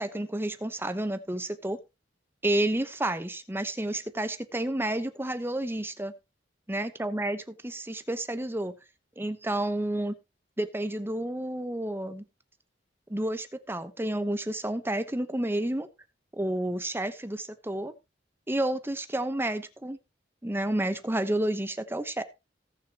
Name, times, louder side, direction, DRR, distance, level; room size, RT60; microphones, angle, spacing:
voice 1, 0.0-1.8 2.4-6.1 6.7-8.7 9.2-10.1 10.6-12.2 13.1-15.9 16.3-17.9 18.5-20.0 20.4-22.2, right 1 dB, 15° right, 10 dB, 1.0 m, -30 dB
18.0 x 6.5 x 3.0 m, 0.26 s
head